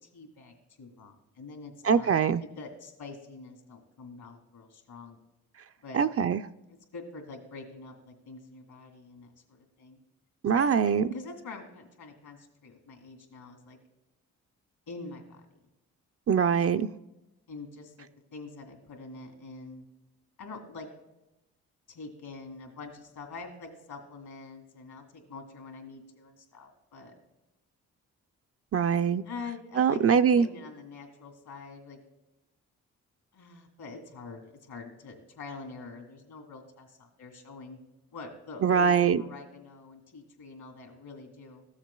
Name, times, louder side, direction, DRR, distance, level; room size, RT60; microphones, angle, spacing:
voice 1, 0.0-2.1 2.4-5.2 5.8-6.0 6.7-10.0 10.5-13.8 14.9-15.4 17.5-19.8 20.4-20.9 21.9-27.1 29.2-32.0 33.3-37.8 38.1-41.6, left 4 dB, 70° left, 2.5 m, -45 dB
voice 2, 1.8-2.4 5.9-6.4 10.4-11.1 16.3-16.9 28.7-29.2 29.8-30.5 38.6-39.2, right 7 dB, 40° right, 0.5 m, -23 dB
14.5 x 7.3 x 2.3 m
supercardioid pair, 45°, 38 cm